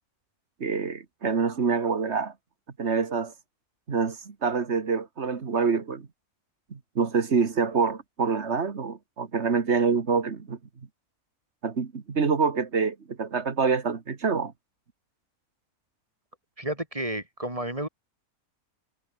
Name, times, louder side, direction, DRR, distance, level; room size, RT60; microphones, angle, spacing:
voice 1, 0.6-2.3 2.8-3.3 3.9-6.1 6.7-10.6 11.6-14.5, right 5 dB, 50° right, 1.9 m, -26 dB
voice 2, 16.6-17.9, right 1 dB, 20° right, 4.7 m, -31 dB
omnidirectional pair, 1.6 m